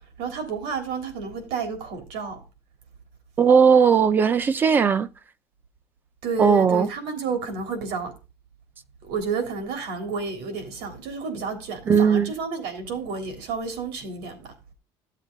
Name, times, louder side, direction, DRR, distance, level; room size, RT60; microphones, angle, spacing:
voice 1, 0.2-2.4 6.2-8.1 9.0-14.5, right 5 dB, 90° right, 3.5 m, -31 dB
voice 2, 3.4-5.1 6.4-6.9 11.9-12.3, right 6 dB, 20° right, 0.5 m, -18 dB
14.5 x 7.4 x 3.9 m
cardioid pair, 175°, 9 cm